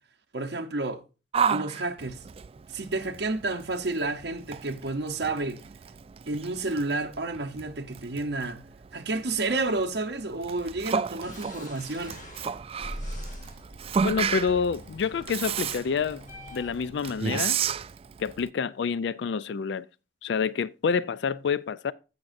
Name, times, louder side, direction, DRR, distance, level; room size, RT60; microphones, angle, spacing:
voice 1, 0.3-1.0 1.5-2.2 2.7-5.6 6.3-8.6 8.9-12.2, right 2 dB, 70° right, 0.8 m, -30 dB
Yell, 1.3-18.5, right 6 dB, 35° right, 0.4 m, -33 dB
sound 1, 11.2-16.9, equal, 45° left, 1.7 m, -42 dB
voice 2, 14.0-16.2 16.5-17.6 18.2-19.8 20.2-21.9, left 6 dB, 85° left, 0.4 m, -28 dB
16.0 x 6.0 x 2.6 m
head